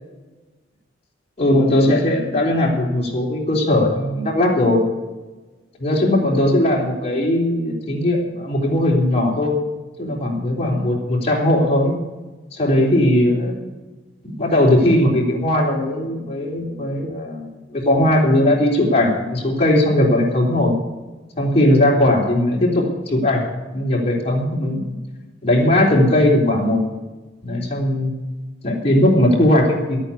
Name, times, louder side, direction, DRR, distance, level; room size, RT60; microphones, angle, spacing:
voice 1, 1.4-4.8 5.8-9.6 10.0-11.9 12.5-13.6 14.2-20.7 21.4-23.5 23.7-24.9 25.4-26.8 27.4-28.1 28.6-30.0, left 1 dB, 35° left, -3 dB, 3.5 m, -18 dB
12.5 x 8.9 x 8.4 m, 1.2 s
head